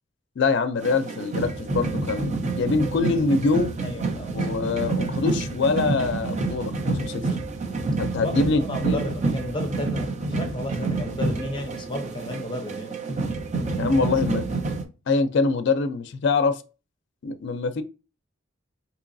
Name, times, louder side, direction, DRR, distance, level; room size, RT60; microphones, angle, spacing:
voice 1, 0.4-3.8 4.3-7.2 8.0-9.1 13.8-14.5 15.1-16.6 17.2-17.8, left 4 dB, 60° left, 0.4 m, -24 dB
sound 1, 0.8-14.8, right 3 dB, 35° right, 0.5 m, -28 dB
voice 2, 3.8-4.7 8.2-12.9, left 1 dB, 25° left, 0.6 m, -33 dB
3.8 x 2.8 x 2.5 m
head